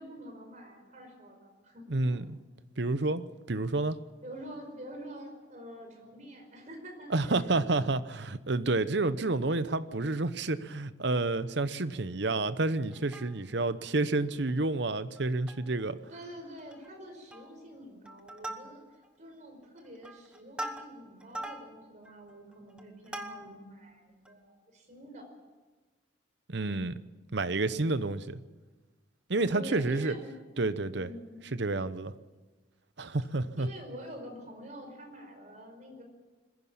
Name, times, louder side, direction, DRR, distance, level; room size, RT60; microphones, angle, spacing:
voice 1, 0.0-2.2 4.2-7.1 16.1-25.3 29.5-30.4 30.9-31.4 33.6-36.0, equal, 40° right, 3 dB, 5.2 m, -46 dB
voice 2, 1.9-2.2 2.8-4.0 7.1-16.0 26.5-27.0 27.3-28.4 29.3-30.1 30.6-31.1 31.5-32.1 33.0-33.7, right 2 dB, 60° right, 14 dB, 0.9 m, -29 dB
Plucked string instrument, 12.9-13.7 14.1-14.2 14.5-14.7 15.2-15.8 16.1-16.2 16.6-17.0 17.3-17.7 18.1-19.1 19.6-23.7 24.3-24.4, right 1 dB, 5° right, 1.2 m, -43 dB
21.5 x 15.5 x 8.7 m, 1.2 s
head